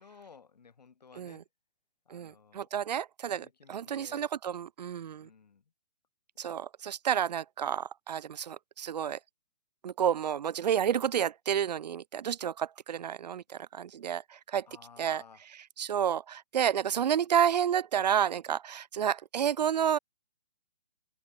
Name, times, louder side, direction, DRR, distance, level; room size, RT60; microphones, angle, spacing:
voice 1, 0.0-1.5 2.0-2.7 3.3-4.3 5.2-5.7 14.7-15.4, left 5 dB, 80° left, 6.7 m, -55 dB
voice 2, 2.1-5.3 6.4-9.2 9.8-14.7 15.0-15.2 15.8-20.0, right 9 dB, 85° right, 0.5 m, -30 dB
hypercardioid pair, 165°, 21 cm